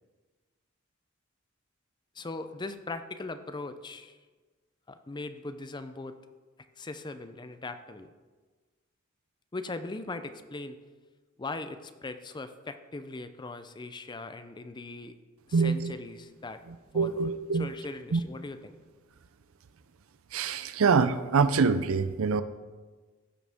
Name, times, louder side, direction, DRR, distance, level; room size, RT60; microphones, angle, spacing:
voice 1, 2.1-4.2 4.9-6.2 6.8-8.1 9.5-10.8 11.4-15.2 15.5-16.6 16.9-18.8, left 3 dB, 20° left, 10 dB, 0.5 m, -40 dB
voice 2, 15.5-15.9 16.9-17.7 18.1-18.2 20.3-22.4, right 5 dB, 70° right, 13 dB, 0.5 m, -25 dB
15.5 x 6.2 x 3.6 m, 1.3 s
head